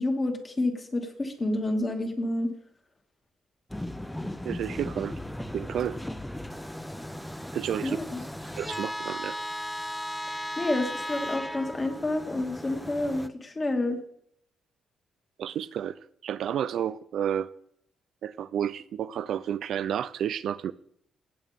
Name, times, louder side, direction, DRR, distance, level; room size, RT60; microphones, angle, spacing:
voice 1, 0.0-2.5 7.8-8.2 10.6-14.0, left 2 dB, 30° left, 3 dB, 2.4 m, -29 dB
sound 1, 3.7-13.3, left 1 dB, 5° left, 0.7 m, -36 dB
voice 2, 4.4-5.1 5.5-6.0 7.5-8.0 8.6-9.4 15.4-17.5 18.2-20.7, right 9 dB, 70° right, 14 dB, 0.4 m, -31 dB
16.5 x 8.6 x 3.6 m, 0.69 s
cardioid pair, 90°, 0 cm